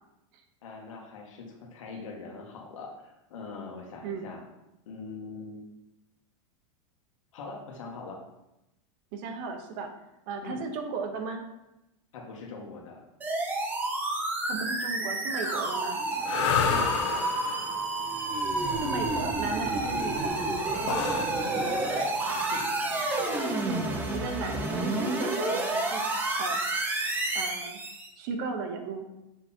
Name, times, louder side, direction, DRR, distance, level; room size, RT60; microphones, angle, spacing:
voice 1, 0.6-4.4 4.8-5.6 7.3-8.2 10.4-10.6 12.1-13.0 16.6-17.3 21.1-22.7, left 4 dB, 85° left, 1 dB, 1.7 m, -42 dB
voice 2, 9.1-9.9 10.3-11.4 14.5-16.0 18.8-20.3 24.1-26.0 26.4-26.6 27.3-27.8 28.2-29.1, right 4 dB, 40° right, 5 dB, 0.9 m, -35 dB
sound 1, 13.2-28.1, right 2 dB, 10° right, 0.6 m, -30 dB
sound 2, 16.2-24.2, left 7 dB, 60° left, 0.8 m, -32 dB
7.1 x 4.0 x 4.3 m, 0.90 s
supercardioid pair, 170°, 16 cm